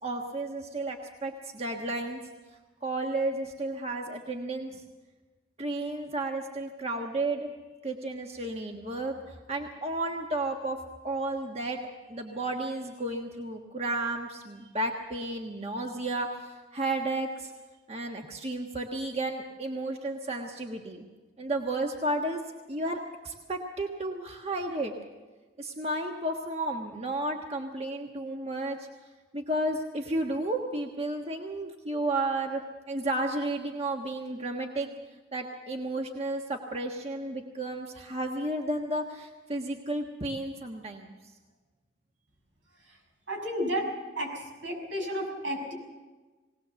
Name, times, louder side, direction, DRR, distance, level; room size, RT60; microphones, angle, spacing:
voice 1, 0.0-2.2 2.8-4.8 5.6-7.5 7.8-10.8 11.0-11.8 12.1-17.5 17.9-21.0 21.4-22.4 22.7-24.9 25.6-28.9 29.3-34.9 35.3-41.1, right 2 dB, 35° right, 2 dB, 1.3 m, -32 dB
voice 2, 43.3-43.9 44.2-45.7, equal, 85° right, 1 dB, 6.4 m, -32 dB
20.5 x 18.0 x 7.0 m, 1.3 s
head